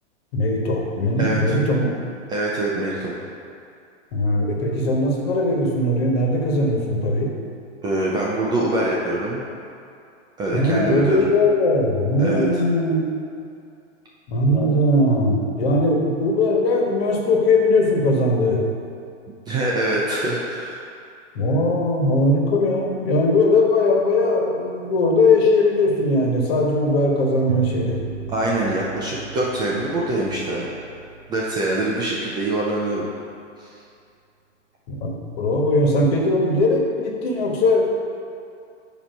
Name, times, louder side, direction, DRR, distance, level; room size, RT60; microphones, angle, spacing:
voice 1, 0.3-1.9 4.1-7.3 10.5-13.0 14.3-18.6 21.3-28.0 34.9-37.8, left 2 dB, 55° left, 0 dB, 1.4 m, -19 dB
voice 2, 1.2-1.5 2.3-3.2 7.8-9.4 10.4-11.2 12.2-12.5 19.5-20.8 28.3-30.7 31.3-33.1 33.6-33.7, right 1 dB, 15° right, -5 dB, 0.3 m, -24 dB
sound 1, 27.5-32.6, right 3 dB, 80° right, 1.2 m, -35 dB
8.8 x 3.0 x 5.2 m, 2.4 s
hypercardioid pair, 120°, 36 cm